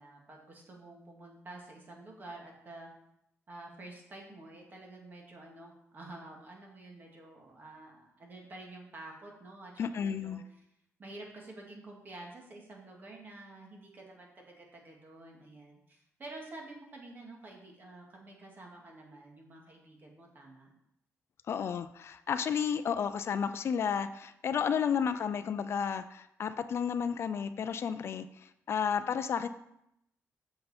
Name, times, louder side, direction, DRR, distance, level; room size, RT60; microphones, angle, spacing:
voice 1, 0.0-2.9 3.5-10.6 11.0-20.7, right 2 dB, 40° right, 0 dB, 2.0 m, -49 dB
voice 2, 9.8-10.4 21.5-29.5, left 7 dB, 55° left, 12 dB, 0.4 m, -32 dB
7.7 x 6.8 x 4.3 m, 0.80 s
cardioid pair, 135°, 5 cm